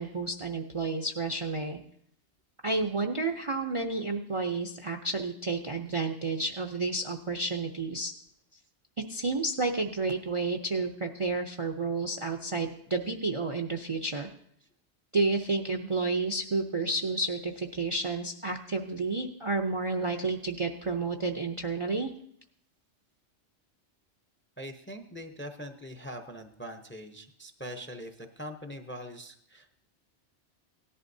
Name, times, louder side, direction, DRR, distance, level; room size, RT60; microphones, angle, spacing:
voice 1, 0.0-1.8 2.6-8.1 9.1-14.3 15.1-22.1, right 3 dB, 40° right, 3 dB, 0.5 m, -31 dB
voice 2, 24.6-29.8, equal, 15° left, 6 dB, 0.6 m, -42 dB
17.5 x 11.0 x 2.7 m, 0.68 s
omnidirectional pair, 1.2 m